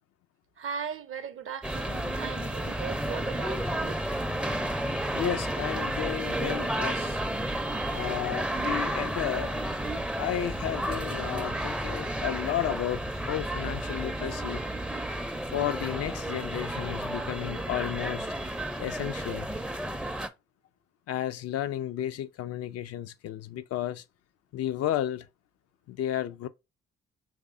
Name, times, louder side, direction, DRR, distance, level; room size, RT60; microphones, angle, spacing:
voice 1, 0.6-4.0, right 7 dB, 45° right, 0.7 m, -38 dB
sound 1, 1.6-20.3, right 1 dB, 5° right, 0.5 m, -32 dB
voice 2, 5.1-7.2 7.9-9.6 10.2-14.6 15.5-18.3 18.8-19.5 21.1-24.0 24.5-25.3 25.9-26.5, left 12 dB, 55° left, 0.4 m, -33 dB
4.8 x 3.2 x 2.5 m
hypercardioid pair, 40°, 30 cm